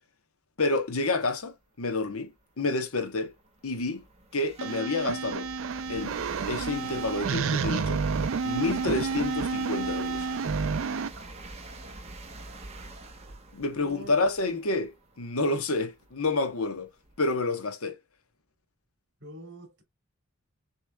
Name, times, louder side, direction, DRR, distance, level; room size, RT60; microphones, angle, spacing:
voice 1, 0.6-2.3 2.6-3.3 3.6-4.0 4.3-5.5 5.9-6.2 6.5-8.0 8.4-10.3 13.5-16.9 17.2-18.0, left 3 dB, 85° left, 1.1 m, -29 dB
sound 1, 1.9-2.0 2.6-17.4, right 2 dB, 30° right, 1.0 m, -45 dB
sound 2, 4.6-11.1, right 5 dB, 70° right, 0.4 m, -30 dB
voice 2, 13.7-14.1 19.2-19.8, equal, 50° right, 1.9 m, -44 dB
6.6 x 3.2 x 2.2 m
head